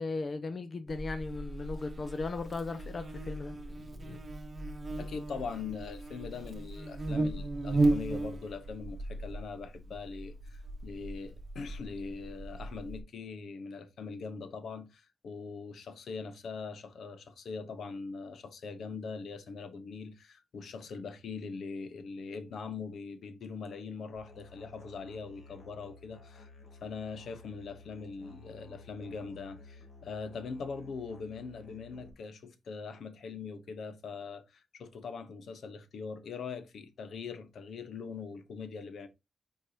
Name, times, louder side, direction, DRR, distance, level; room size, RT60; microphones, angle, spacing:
voice 1, 0.0-3.5, left 3 dB, 40° left, 0.6 m, -37 dB
Buzz, 0.9-13.0, right 2 dB, 30° right, 1.2 m, -36 dB
voice 2, 3.3-4.2 5.0-26.5 26.8-39.1, left 5 dB, 80° left, 1.0 m, -42 dB
Musical instrument, 24.2-32.1, left 3 dB, 55° left, 1.8 m, -53 dB
8.0 x 4.6 x 2.8 m
wide cardioid pair, 130°, 0 cm